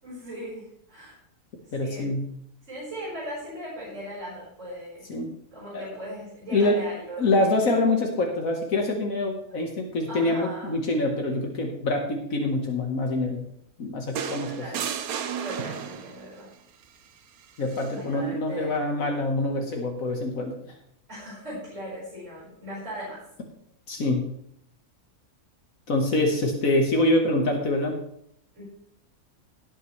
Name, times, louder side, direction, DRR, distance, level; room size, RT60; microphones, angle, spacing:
voice 1, 0.0-1.2 1.8-2.1 2.7-5.1 5.5-7.3 10.1-10.7 14.2-14.8 15.4-16.5 17.9-18.8 21.1-23.2 28.5-28.6, equal, 55° right, -7 dB, 5.3 m, -38 dB
voice 2, 1.7-2.3 5.1-5.3 5.7-6.0 6.5-6.8 7.2-13.4 13.8-14.5 17.6-20.7 23.9-24.3 25.9-28.0, left 2 dB, 70° left, 2 dB, 1.8 m, -25 dB
sound 1, 14.2-16.3 17.7-17.9, right 8 dB, 85° right, 1.3 m, -33 dB
17.0 x 8.7 x 3.2 m, 0.71 s
omnidirectional pair, 1.5 m